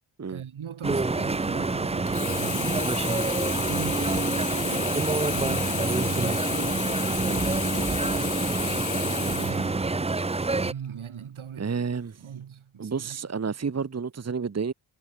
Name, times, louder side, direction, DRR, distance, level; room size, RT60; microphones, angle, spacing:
voice 1, 0.3-2.9 3.4-10.1 10.6-11.7 12.2-13.2, right 8 dB, 70° right, 4.9 m, -40 dB
sound 1, 0.8-10.7, right 3 dB, 15° right, 0.6 m, -27 dB
Sink (filling or washing), 2.1-10.3 10.8-10.9, left 10 dB, 40° left, 0.4 m, -33 dB
voice 2, 11.6-12.3 12.8-14.7, right 5 dB, 30° right, 1.5 m, -30 dB
wide cardioid pair, 160°, 50 cm